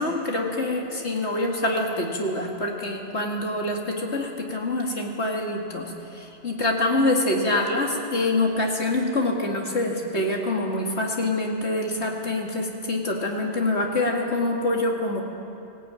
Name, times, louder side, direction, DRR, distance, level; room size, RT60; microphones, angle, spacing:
voice 1, 0.0-15.2, left 2 dB, 85° left, 0 dB, 2.7 m, -25 dB
19.0 x 16.5 x 9.1 m, 2.7 s
omnidirectional pair, 1.1 m